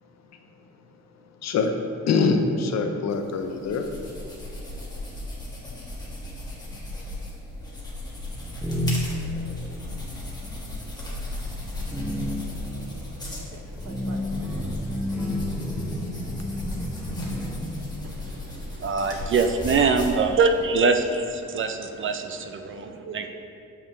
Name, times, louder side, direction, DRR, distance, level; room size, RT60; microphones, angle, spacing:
voice 1, 1.4-1.7 2.1-3.8, left 4 dB, 60° left, 5 dB, 0.7 m, -23 dB
sound 1, 3.1-20.6, left 1 dB, 15° left, 1.6 m, -36 dB
sound 2, 8.3-9.4 10.5-10.8 11.2-17.7, left 1 dB, 5° right, 1.0 m, -30 dB
voice 2, 12.1-13.6 13.8-14.7 22.8-23.3, right 4 dB, 60° right, 3 dB, 0.8 m, -44 dB
voice 3, 18.0-23.3, right 4 dB, 45° right, 7 dB, 0.4 m, -24 dB
7.2 x 5.2 x 3.1 m, 2.5 s
cardioid pair, 90°, 30 cm